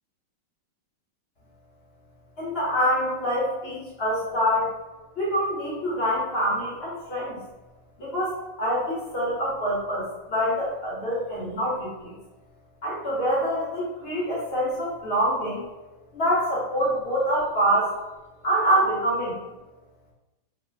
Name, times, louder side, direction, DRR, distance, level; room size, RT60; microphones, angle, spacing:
voice 1, 2.4-4.7 5.2-7.4 8.0-12.2 12.8-15.6 16.1-17.9 18.4-19.4, equal, 45° left, -6 dB, 0.9 m, -25 dB
3.1 x 2.1 x 3.2 m, 1.1 s
omnidirectional pair, 1.9 m